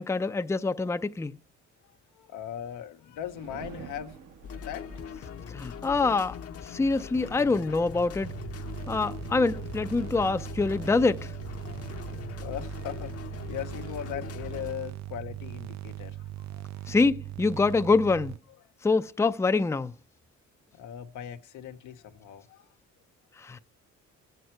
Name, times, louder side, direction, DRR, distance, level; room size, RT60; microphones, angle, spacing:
voice 1, 0.0-1.3 5.5-6.4 6.6-8.3 8.9-11.3 16.9-18.4 18.8-19.9 23.4-23.6, left 3 dB, 10° left, 0.5 m, -25 dB
voice 2, 1.9-4.2 4.6-4.8 11.7-16.9 20.7-22.7, left 10 dB, 85° left, 1.0 m, -40 dB
sound 1, 3.2-8.6, right 7 dB, 85° right, 1.7 m, -50 dB
sound 2, 4.4-14.7, left 7 dB, 50° left, 0.9 m, -41 dB
sound 3, 8.2-18.4, right 14 dB, 65° right, 0.6 m, -40 dB
19.0 x 8.0 x 4.5 m
cardioid pair, 90°, 30 cm